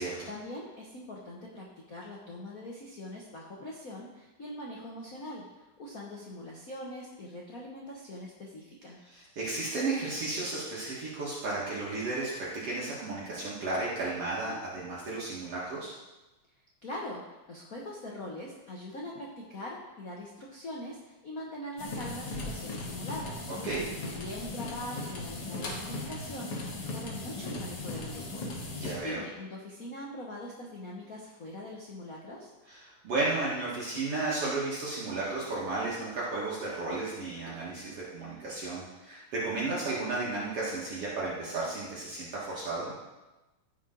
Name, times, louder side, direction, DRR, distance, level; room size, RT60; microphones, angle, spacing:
voice 1, 0.3-5.5 5.8-9.0 16.8-23.5 24.0-28.5 29.0-32.5, left 1 dB, 75° left, -3 dB, 0.8 m, -42 dB
voice 2, 9.1-15.9 23.6-23.9 28.7-29.2 32.7-42.9, right 3 dB, 55° right, -7 dB, 2.6 m, -33 dB
sound 1, 21.8-29.0, left 2 dB, 55° left, 2.2 m, -38 dB
15.0 x 5.7 x 3.9 m, 1.1 s
omnidirectional pair, 3.4 m